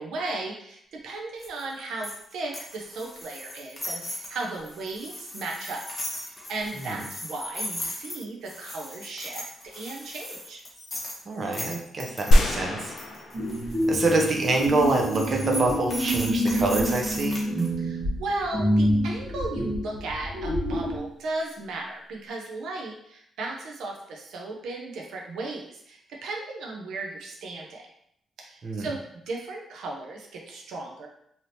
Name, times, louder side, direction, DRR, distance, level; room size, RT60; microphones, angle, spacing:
voice 1, 0.0-5.8 6.2-10.6 17.8-27.8 28.4-31.1, right 2 dB, 90° right, 0 dB, 0.5 m, -36 dB
sound 1, 1.4-12.4 13.0-17.7, left 1 dB, 20° left, 0.9 m, -38 dB
voice 2, 11.3-12.9 13.9-17.4 28.6-28.9, right 2 dB, 45° right, 0 dB, 0.6 m, -26 dB
sound 2, 12.3-14.1 14.6-14.7, equal, 70° left, 0.5 m, -22 dB
sound 3, 13.3-21.0, equal, 60° right, 1.2 m, -27 dB
3.3 x 2.7 x 2.7 m, 0.72 s
cardioid pair, 120°, 0 cm